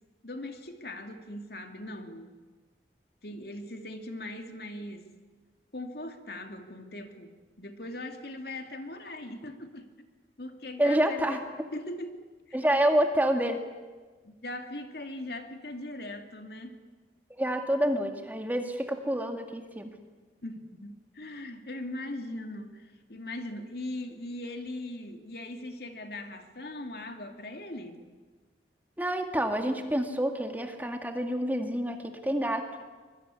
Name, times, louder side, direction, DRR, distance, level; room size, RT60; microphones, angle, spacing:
voice 1, 0.2-2.3 3.2-5.1 5.7-9.9 10.4-11.4 11.7-12.2 12.5-12.6 14.2-16.8 20.4-28.1, left 1 dB, 60° left, 6 dB, 2.5 m, -40 dB
voice 2, 10.8-11.7 12.5-13.6 17.4-19.9 29.0-32.7, right 1 dB, 10° right, 5 dB, 2.1 m, -28 dB
25.0 x 21.5 x 9.8 m, 1.4 s
head